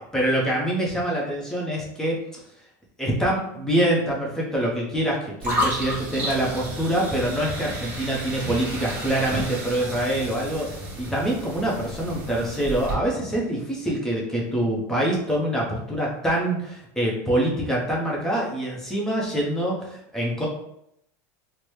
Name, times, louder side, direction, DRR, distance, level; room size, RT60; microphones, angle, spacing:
voice 1, 0.1-2.2 3.0-20.5, right 1 dB, 5° left, -3 dB, 0.9 m, -25 dB
sound 1, 5.4-12.9, equal, 20° right, 1.4 m, -31 dB
3.9 x 2.2 x 3.1 m, 0.77 s
supercardioid pair, 135°, 9 cm